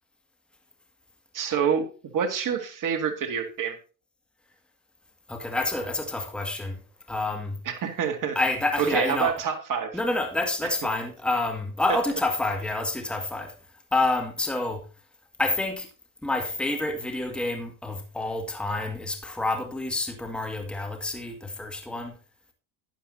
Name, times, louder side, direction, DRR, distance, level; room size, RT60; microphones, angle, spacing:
voice 1, 1.3-1.9 2.1-3.8 7.7-8.4 8.8-9.9, right 7 dB, 40° right, 2.1 m, -26 dB
voice 2, 5.3-6.8 7.1-7.6 8.4-9.4 9.9-13.5 13.9-14.8 15.4-15.9 16.2-22.2, left 2 dB, ahead, 1.8 m, -28 dB
12.0 x 10.0 x 2.7 m
supercardioid pair, 90°, 50 cm